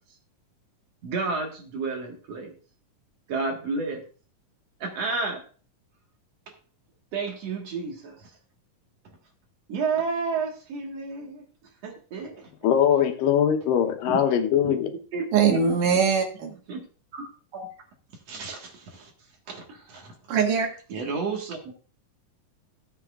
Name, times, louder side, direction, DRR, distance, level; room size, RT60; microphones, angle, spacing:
voice 1, 1.0-2.5 3.3-4.0 4.8-5.4 7.1-8.2 9.7-11.4 11.8-12.5 14.1-14.2 14.6-14.8 15.1-15.3 15.5-15.6 16.7-16.8 17.1-17.7 18.3-19.1 19.5-20.1 20.9-21.7, right 4 dB, 55° right, 2.5 m, -31 dB
voice 2, 12.6-14.9, left 9 dB, 85° left, 2.8 m, -21 dB
voice 3, 15.3-16.5 20.3-20.7, right 6 dB, 75° right, 3.0 m, -22 dB
16.5 x 7.6 x 2.4 m
omnidirectional pair, 3.8 m